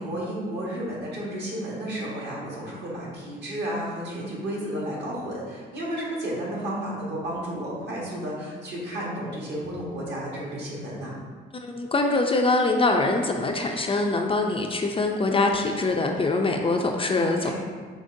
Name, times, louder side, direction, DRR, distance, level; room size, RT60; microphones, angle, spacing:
voice 1, 0.0-11.2 17.2-17.5, right 1 dB, 60° right, -4 dB, 1.4 m, -32 dB
voice 2, 11.5-17.5, left 2 dB, 25° left, 2 dB, 0.4 m, -24 dB
5.1 x 3.2 x 2.6 m, 1.5 s
cardioid pair, 90°, 20 cm